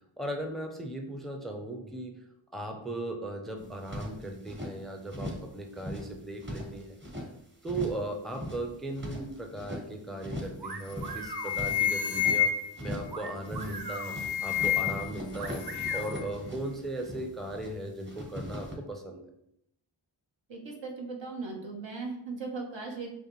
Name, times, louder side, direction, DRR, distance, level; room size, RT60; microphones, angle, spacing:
voice 1, 0.2-2.2 2.5-7.0 7.6-12.5 12.8-15.7 15.9-19.2, right 1 dB, ahead, 3 dB, 0.5 m, -37 dB
sound 1, 3.6-4.7 5.1-5.5 5.8-7.3 7.6-8.1 8.3-9.8 10.2-10.6 10.9-12.4 12.7-13.2 13.4-13.8 14.1-17.7 18.0-18.8, left 1 dB, 25° right, 1.0 m, -40 dB
sound 2, 10.6-11.5 13.1-14.1 15.4-16.1, right 4 dB, 55° right, 0.6 m, -40 dB
sound 3, 10.7-10.9 11.2-12.9 13.7-15.2 15.4-16.2, left 9 dB, 85° left, 0.6 m, -29 dB
voice 2, 20.5-23.1, right 3 dB, 75° right, 0 dB, 1.0 m, -38 dB
5.3 x 2.3 x 3.0 m, 0.76 s
wide cardioid pair, 50°, 46 cm